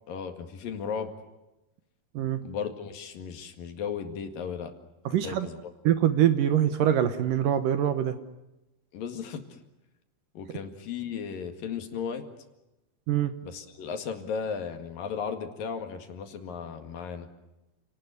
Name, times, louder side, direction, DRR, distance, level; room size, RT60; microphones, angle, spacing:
voice 1, 0.1-1.1 2.4-4.7 5.2-5.6 8.9-9.4 10.4-12.2 13.4-17.3, left 6 dB, 65° left, 7 dB, 3.6 m, -35 dB
voice 2, 5.1-5.5 5.8-8.2 13.1-13.3, right 10 dB, 70° right, 10 dB, 2.5 m, -24 dB
29.5 x 19.0 x 9.7 m, 0.95 s
omnidirectional pair, 4.6 m